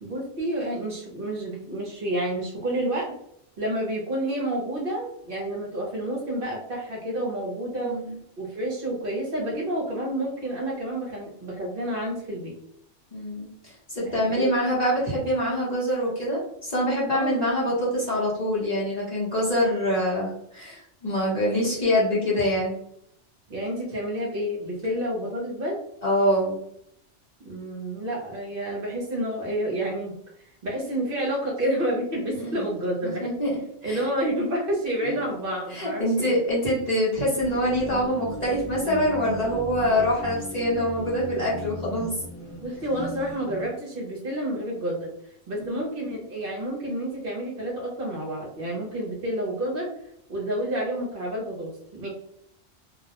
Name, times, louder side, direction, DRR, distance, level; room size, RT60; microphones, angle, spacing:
voice 1, 0.0-3.1 3.6-8.0 8.4-12.5 14.1-14.5 17.1-17.4 23.5-25.8 27.4-30.2 30.6-33.4 33.8-36.4 42.6-45.1 45.5-49.9 50.3-52.1, right 1 dB, 55° right, -3 dB, 0.8 m, -29 dB
voice 2, 7.8-8.2 13.1-13.5 13.9-22.7 26.0-26.6 32.3-32.6 33.0-34.0 35.0-35.2 35.7-42.1, equal, 40° left, -6 dB, 0.8 m, -25 dB
sound 1, 37.4-43.6, equal, 10° right, 0.7 m, -37 dB
2.4 x 2.1 x 2.7 m, 0.73 s
omnidirectional pair, 1.2 m